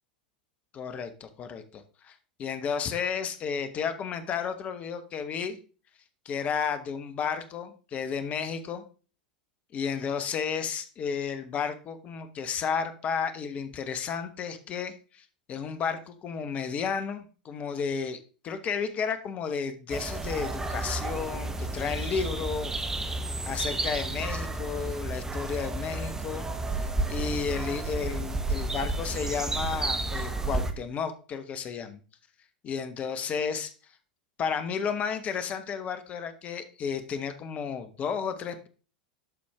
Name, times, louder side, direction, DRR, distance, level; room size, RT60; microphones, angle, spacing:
voice 1, 0.7-5.6 6.2-8.8 9.7-22.7 23.0-26.5 26.8-32.0 32.6-33.7 34.4-38.7, left 6 dB, 30° left, 9 dB, 1.1 m, -32 dB
sound 1, 19.9-30.7, right 2 dB, 10° right, 1.0 m, -32 dB
12.0 x 4.4 x 3.5 m, 0.37 s
figure-of-eight pair, 85°, 5 cm